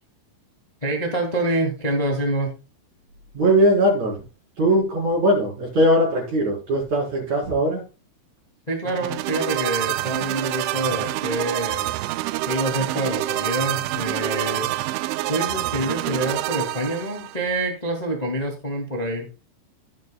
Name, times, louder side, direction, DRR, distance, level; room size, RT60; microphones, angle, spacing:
voice 1, 0.8-2.5 8.7-11.9 12.5-14.7 15.3-19.3, right 1 dB, 55° left, 2 dB, 0.4 m, -26 dB
voice 2, 3.3-4.2 4.6-7.8, equal, 40° right, -4 dB, 5.3 m, -20 dB
sound 1, 8.8-17.4, right 16 dB, 80° right, 2.9 m, -27 dB
16.0 x 9.0 x 2.3 m, 0.29 s
omnidirectional pair, 5.5 m